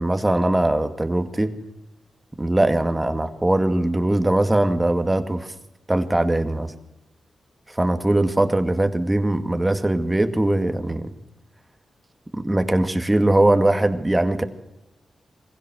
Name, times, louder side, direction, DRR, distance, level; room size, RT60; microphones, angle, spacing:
voice 1, 0.0-1.5 2.4-5.5 5.9-6.7 7.7-11.1 12.3-14.4, right 1 dB, 15° right, 8 dB, 2.1 m, -21 dB
22.5 x 16.0 x 7.8 m, 0.91 s
cardioid pair, 70°, 0 cm